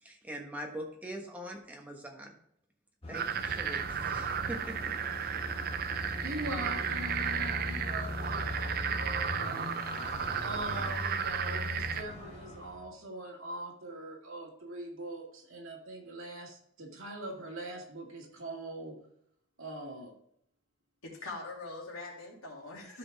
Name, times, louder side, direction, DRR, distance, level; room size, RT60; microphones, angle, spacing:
voice 1, 0.0-2.4 3.1-5.0, equal, 10° right, 0 dB, 1.4 m, -43 dB
sound 1, 3.0-12.9, left 1 dB, 25° left, 1.4 m, -40 dB
sound 2, 3.1-12.0, right 7 dB, 45° right, 0.5 m, -34 dB
voice 2, 6.2-19.0 19.6-20.1, right 1 dB, 70° right, 0 dB, 2.1 m, -42 dB
voice 3, 21.0-23.0, left 3 dB, 80° left, -3 dB, 2.8 m, -43 dB
12.5 x 5.2 x 3.5 m, 0.74 s
head